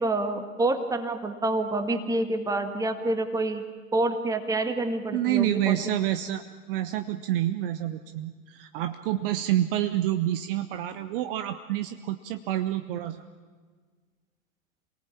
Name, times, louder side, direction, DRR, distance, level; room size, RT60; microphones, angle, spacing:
voice 1, 0.0-3.6 3.9-5.9, right 2 dB, 10° right, 7 dB, 1.9 m, -27 dB
voice 2, 5.1-6.4 6.7-13.2, right 13 dB, 40° right, 10 dB, 1.1 m, -28 dB
28.0 x 18.5 x 8.7 m, 1.5 s
figure-of-eight pair, 100°, 42 cm